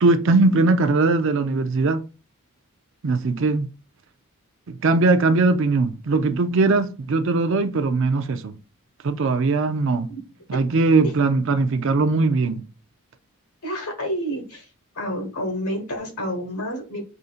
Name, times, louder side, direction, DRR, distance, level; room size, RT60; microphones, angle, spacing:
voice 1, 0.0-2.0 3.0-3.7 4.7-8.6 9.0-10.1 10.5-12.6, right 3 dB, 60° right, 0.4 m, -20 dB
voice 2, 13.6-14.7 14.9-17.0, equal, 85° left, 1.4 m, -29 dB
4.9 x 2.7 x 2.4 m
head